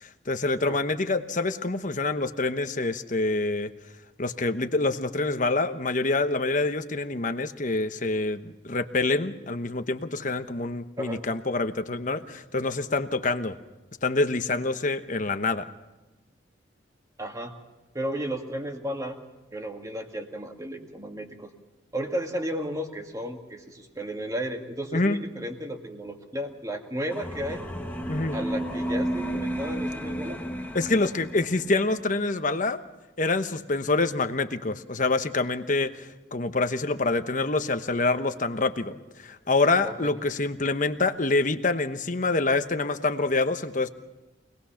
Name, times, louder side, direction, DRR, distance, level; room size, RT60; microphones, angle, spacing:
voice 1, 0.0-3.7 4.2-13.6 14.0-15.7 24.9-25.2 28.1-28.4 30.7-32.8 33.2-43.9, left 3 dB, 40° left, 9 dB, 1.1 m, -26 dB
voice 2, 17.2-17.5 17.9-19.2 19.5-21.5 21.9-27.6 28.3-30.4 39.8-40.1, equal, 20° right, 4 dB, 2.0 m, -33 dB
sound 1, 27.1-31.8, right 1 dB, 10° left, 1.6 m, -32 dB
25.5 x 19.5 x 5.8 m, 1.1 s
head